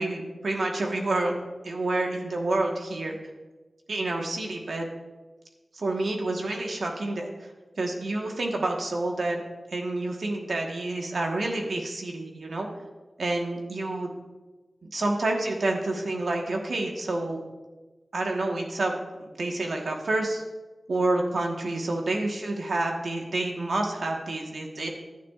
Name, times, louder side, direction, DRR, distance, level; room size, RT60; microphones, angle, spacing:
voice 1, 0.0-1.3 1.6-3.2 3.9-4.9 5.7-7.5 7.8-9.4 9.7-12.7 13.2-14.1 14.8-17.4 18.1-18.9 19.2-20.4 20.9-24.9, right 2 dB, 75° right, 1 dB, 1.3 m, -28 dB
11.5 x 9.2 x 2.4 m, 1.2 s
wide cardioid pair, 60°, 0 cm